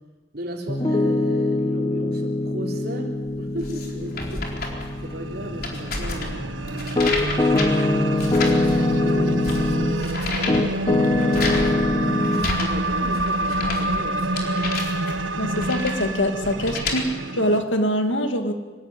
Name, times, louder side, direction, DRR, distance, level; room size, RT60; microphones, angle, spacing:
voice 1, 0.3-4.5 5.0-6.5 7.1-12.1 12.6-14.7, right 1 dB, 55° right, 1 dB, 3.7 m, -35 dB
Piano, 0.7-10.0 10.5-12.5, left 2 dB, 25° left, 0.8 m, -23 dB
sound 1, 3.3-17.0, left 2 dB, 50° left, 4.2 m, -32 dB
sound 2, 4.5-17.6, right 2 dB, 85° right, 1.4 m, -28 dB
voice 2, 15.4-18.5, equal, 80° left, 6 dB, 2.1 m, -24 dB
25.5 x 16.5 x 9.7 m, 1.3 s
head